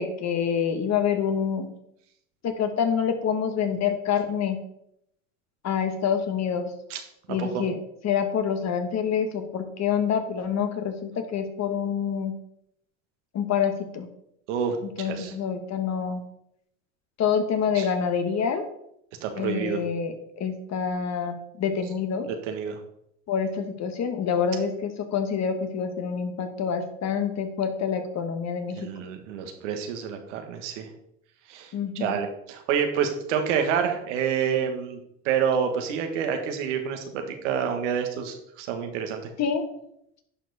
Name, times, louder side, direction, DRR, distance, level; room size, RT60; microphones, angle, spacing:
voice 1, 0.0-1.7 2.4-4.6 5.6-6.7 7.3-7.8 8.0-12.3 13.3-14.1 15.0-16.2 17.2-18.6 19.4-22.3 23.3-28.8 31.7-32.1 39.4-39.6, left 7 dB, 50° left, 7 dB, 1.5 m, -27 dB
voice 2, 7.3-7.6 14.5-15.3 17.7-17.9 19.2-19.8 22.2-22.8 28.7-30.9 31.5-35.0 35.2-39.3, right 7 dB, 85° right, 5 dB, 1.5 m, -28 dB
11.0 x 4.8 x 4.1 m, 0.76 s
supercardioid pair, 85°, 36 cm